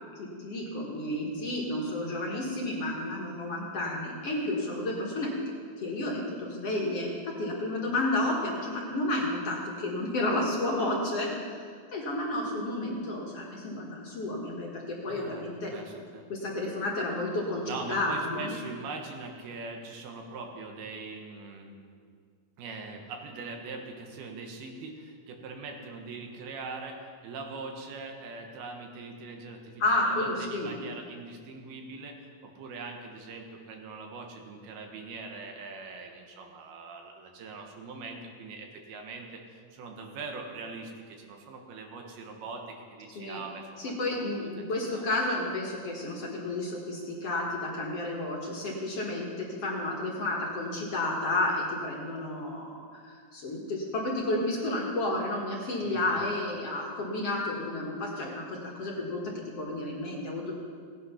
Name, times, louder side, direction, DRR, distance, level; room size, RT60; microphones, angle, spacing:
voice 1, 0.2-5.3 5.8-11.6 11.9-15.7 16.3-18.5 29.8-30.7 43.2-43.4 43.8-60.5, left 2 dB, 50° left, -2 dB, 2.1 m, -31 dB
voice 2, 15.1-15.5 15.7-16.3 17.6-21.8 22.6-44.5 44.9-45.0 55.8-56.3, right 4 dB, 90° right, 3 dB, 3.3 m, -42 dB
17.5 x 9.1 x 5.7 m, 2.1 s
omnidirectional pair, 4.2 m